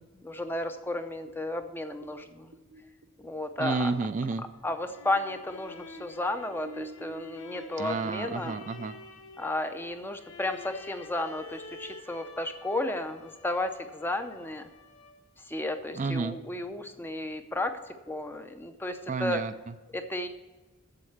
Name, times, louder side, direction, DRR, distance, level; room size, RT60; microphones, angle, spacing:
voice 1, 0.1-2.5 3.2-3.9 4.6-8.6 9.4-14.7 15.5-17.8 18.1-19.4 19.9-20.3, left 1 dB, 10° left, 8 dB, 0.6 m, -33 dB
sound 1, 1.3-4.8 5.1-9.2, right 2 dB, 70° right, 0.9 m, -49 dB
voice 2, 3.6-4.5 7.8-9.0 15.9-16.4 19.1-19.7, right 4 dB, 35° right, 9 dB, 0.4 m, -31 dB
sound 2, 4.6-15.4, left 3 dB, 80° left, 1.1 m, -49 dB
7.8 x 7.5 x 7.2 m, 1.2 s
head